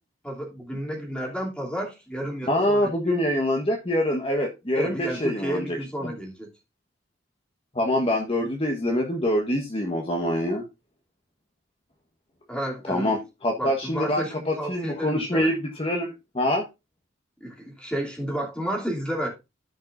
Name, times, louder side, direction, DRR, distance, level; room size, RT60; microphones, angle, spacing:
voice 1, 0.2-3.2 4.7-6.5 12.5-13.1 13.6-15.5 17.4-19.3, equal, 5° left, 2.8 m, -31 dB
voice 2, 2.4-5.8 6.0-6.1 7.7-10.6 12.9-16.6, left 1 dB, 30° left, 1.3 m, -25 dB
15.0 x 5.3 x 2.5 m
head